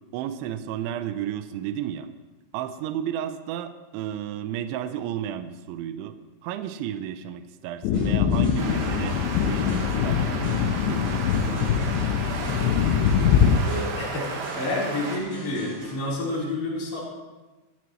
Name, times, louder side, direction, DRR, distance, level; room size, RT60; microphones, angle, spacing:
voice 1, 0.1-2.1 2.5-6.2 6.4-9.2 9.4-12.0, right 10 dB, 80° right, 9 dB, 3.0 m, -33 dB
sound 1, 7.8-13.6, left 8 dB, 85° left, 2.8 m, -23 dB
sound 2, 7.9-15.9, right 2 dB, 40° right, 7.2 m, -44 dB
sound 3, 8.6-15.2, right 4 dB, 60° right, 2.6 m, -34 dB
voice 2, 13.5-17.0, left 2 dB, 35° left, -7 dB, 4.8 m, -29 dB
25.0 x 10.5 x 3.2 m, 1.2 s
omnidirectional pair, 5.5 m